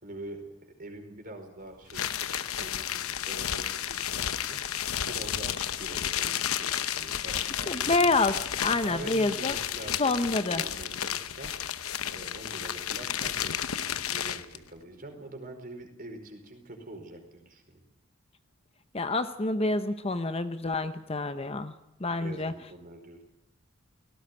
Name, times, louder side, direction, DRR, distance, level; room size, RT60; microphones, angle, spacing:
voice 1, 0.0-7.9 8.8-11.5 12.1-17.8 22.2-23.2, right 1 dB, 40° right, 4 dB, 4.7 m, -45 dB
sound 1, 1.9-14.6, left 10 dB, 80° left, 0.9 m, -32 dB
voice 2, 7.7-8.3 8.6-9.5 10.0-10.6 18.9-21.7 22.0-22.5, left 2 dB, 25° left, 10 dB, 0.8 m, -27 dB
18.0 x 17.0 x 9.8 m, 0.86 s
head